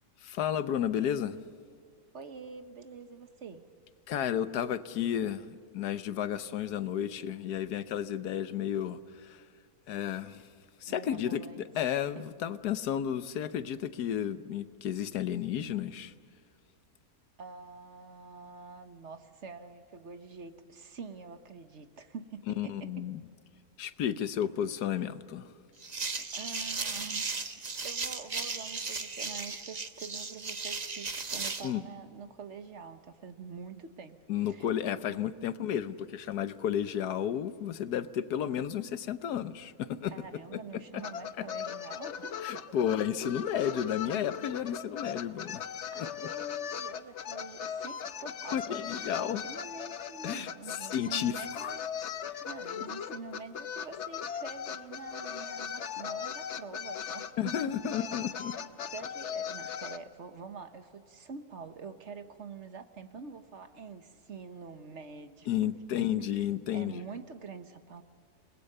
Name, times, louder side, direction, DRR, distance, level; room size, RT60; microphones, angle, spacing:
voice 1, 0.2-1.4 4.1-9.4 9.9-10.5 10.8-16.1 22.5-23.2 23.8-25.5 31.6-31.8 34.3-40.1 40.5-41.0 41.4-41.5 42.4-45.6 46.0-46.1 48.5-49.4 50.2-50.5 50.8-51.8 57.4-58.5 65.5-66.9, left 10 dB, 85° left, 1.4 m, -32 dB
voice 2, 2.1-3.6 10.9-11.7 17.4-23.1 26.3-27.3 27.8-34.7 35.0-35.2 40.1-42.6 45.9-51.8 52.4-57.6 58.9-65.5 66.0-66.1 66.4-68.0, right 5 dB, 50° right, 1.4 m, -46 dB
sound 1, 25.8-31.7, right 4 dB, 30° right, 1.0 m, -36 dB
sound 2, 41.0-60.0, left 8 dB, 55° left, 1.0 m, -39 dB
29.0 x 20.0 x 6.7 m
omnidirectional pair, 1.6 m